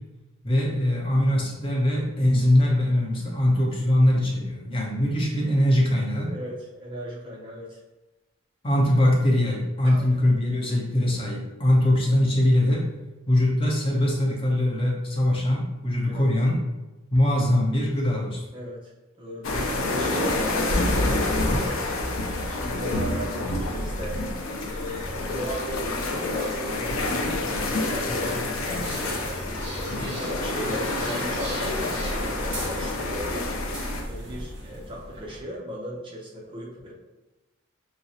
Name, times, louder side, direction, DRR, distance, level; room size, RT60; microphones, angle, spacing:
voice 1, 0.4-6.4 8.6-12.9 13.3-16.6 17.1-18.4, left 1 dB, 25° left, -3 dB, 0.7 m, -22 dB
voice 2, 6.2-7.8 9.8-10.1 16.1-16.3 18.5-18.9 19.2-21.8 22.4-24.2 24.7-29.2 29.7-33.5 34.1-36.9, equal, 25° right, -3 dB, 0.5 m, -37 dB
sound 1, 19.4-34.0, left 2 dB, 85° left, 0.5 m, -28 dB
sound 2, 28.6-35.4, right 1 dB, 60° right, 1.0 m, -37 dB
6.0 x 2.0 x 2.7 m, 1.1 s
head